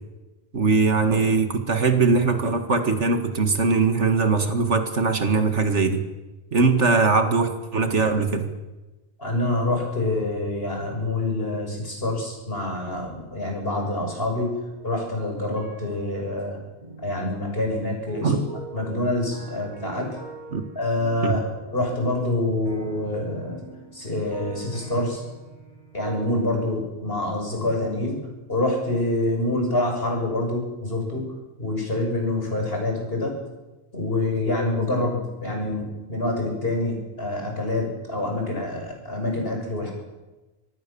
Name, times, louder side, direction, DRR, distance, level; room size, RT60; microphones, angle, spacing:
voice 1, 0.5-6.0 6.5-8.5 18.2-18.4 20.5-20.6 21.2-21.3, right 4 dB, 85° right, 7 dB, 2.4 m, -21 dB
voice 2, 9.2-14.5 14.8-16.6 17.0-18.3 18.7-20.2 20.7-21.4 21.7-23.6 23.9-25.2 25.9-28.2 28.5-31.3 31.6-33.4 33.9-39.9, left 2 dB, 55° left, 1 dB, 6.8 m, -26 dB
sound 1, 13.7-15.2 15.6-26.8, right 3 dB, 45° right, 5.8 m, -42 dB
25.5 x 18.5 x 7.1 m, 1.1 s
omnidirectional pair, 1.2 m